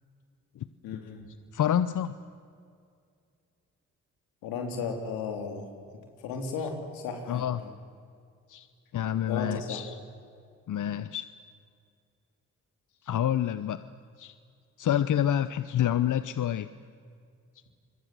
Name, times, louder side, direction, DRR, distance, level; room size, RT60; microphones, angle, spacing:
voice 1, 0.8-1.2 4.4-5.7 6.2-7.7 9.3-9.8, left 5 dB, 90° left, 4 dB, 3.5 m, -35 dB
voice 2, 1.5-2.1 7.3-7.6 8.5-8.7 8.9-10.0 10.7-11.3 13.0-13.8 14.2-14.3 14.8-16.7, left 10 dB, 65° left, 14 dB, 0.9 m, -28 dB
28.0 x 22.5 x 7.7 m, 2.3 s
supercardioid pair, 50°, 34 cm